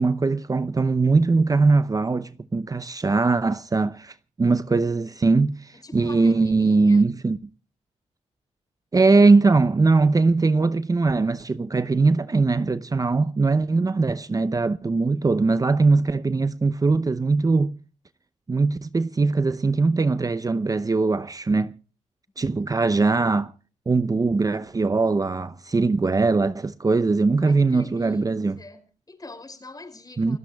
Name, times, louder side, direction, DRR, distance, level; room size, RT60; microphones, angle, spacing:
voice 1, 0.0-7.4 8.9-17.7 18.5-21.7 22.4-23.5 23.9-28.6 30.2-30.4, right 3 dB, 30° right, 0.6 m, -21 dB
voice 2, 5.7-7.0 22.4-22.9 27.4-30.4, left 2 dB, 30° left, 5.6 m, -44 dB
29.5 x 16.5 x 2.3 m
cardioid pair, 65°, 13 cm